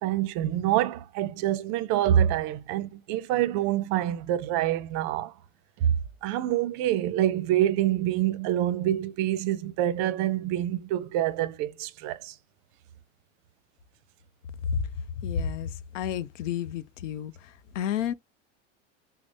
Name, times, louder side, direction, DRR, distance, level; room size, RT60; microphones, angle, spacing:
voice 1, 0.0-5.3 5.8-12.3, right 12 dB, 55° right, 0.6 m, -26 dB
voice 2, 15.2-18.1, left 8 dB, 90° left, 0.5 m, -31 dB
5.9 x 2.0 x 2.7 m
supercardioid pair, 115°, 36 cm